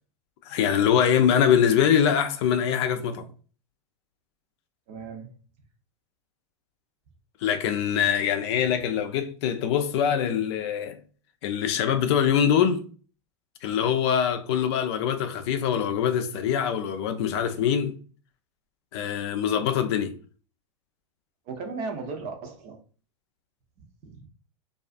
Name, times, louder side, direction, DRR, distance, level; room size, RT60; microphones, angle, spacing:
voice 1, 0.5-3.3 7.4-11.0 11.4-12.9 13.6-17.9 18.9-20.2, left 8 dB, 60° left, 0.5 m, -23 dB
voice 2, 4.9-5.3 21.5-22.8 24.0-24.3, right 4 dB, 45° right, 0.7 m, -36 dB
2.4 x 2.3 x 2.5 m
hypercardioid pair, 100°, 16 cm